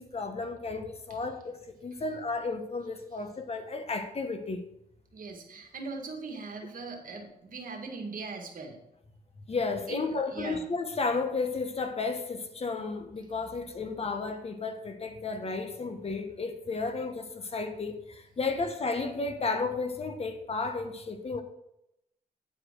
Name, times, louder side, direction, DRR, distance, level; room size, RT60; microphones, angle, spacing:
voice 1, 0.0-4.6 9.5-21.4, left 3 dB, 40° left, 1.1 m, -33 dB
voice 2, 5.1-8.8 9.9-10.7, right 4 dB, 55° right, 1.8 m, -40 dB
9.6 x 5.0 x 6.3 m
cardioid pair, 90°, 16 cm